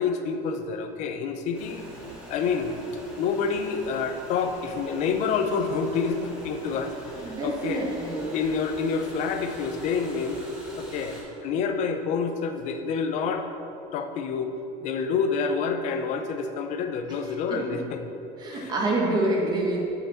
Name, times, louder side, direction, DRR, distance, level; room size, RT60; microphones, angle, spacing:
voice 1, 0.0-1.8 2.3-2.8 3.2-7.8 8.3-10.4 10.7-13.5 13.9-14.5 14.8-18.0 18.5-18.7, left 5 dB, 50° left, 7 dB, 0.8 m, -28 dB
sound 1, 1.5-11.2, equal, 5° right, 2.2 m, -44 dB
voice 2, 7.2-8.3 17.1-17.6 18.4-19.8, right 2 dB, 30° right, -2 dB, 1.5 m, -27 dB
7.2 x 5.9 x 7.0 m, 2.8 s
cardioid pair, 165°, 15 cm